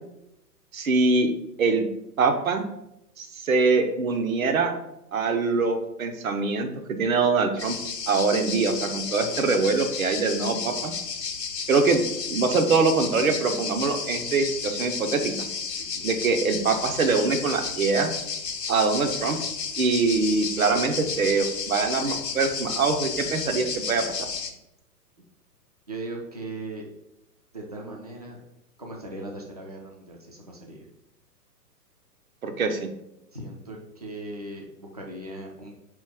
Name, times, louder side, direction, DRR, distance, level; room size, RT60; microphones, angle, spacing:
voice 1, 0.7-1.3 1.6-1.9 2.2-2.7 3.2-4.7 5.1-6.7 7.0-7.8 8.1-10.9 11.7-15.3 16.0-18.1 18.7-19.4 19.8-24.0 32.4-32.9, right 4 dB, 55° right, 5 dB, 0.7 m, -23 dB
sound 1, 7.6-24.5, left 5 dB, 80° left, 0.7 m, -32 dB
voice 2, 15.7-16.1 25.9-26.8 27.5-28.4 28.8-30.9 33.3-35.7, right 2 dB, 25° right, 0 dB, 0.4 m, -38 dB
4.3 x 3.1 x 3.4 m, 0.86 s
figure-of-eight pair, 120°, 49 cm